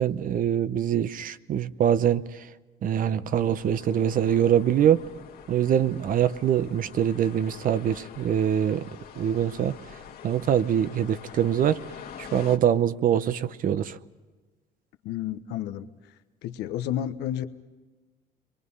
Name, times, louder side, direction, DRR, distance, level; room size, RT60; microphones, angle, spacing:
voice 1, 0.0-2.5 2.8-5.0 5.5-8.8 9.2-9.8 10.2-11.8 12.2-14.0, right 9 dB, 55° right, 0.9 m, -24 dB
sound 1, 3.4-12.6, left 9 dB, 65° left, 1.9 m, -45 dB
voice 2, 15.0-15.9 16.4-17.5, left 11 dB, 85° left, 1.1 m, -31 dB
29.0 x 23.0 x 5.6 m
cardioid pair, 110°, 17 cm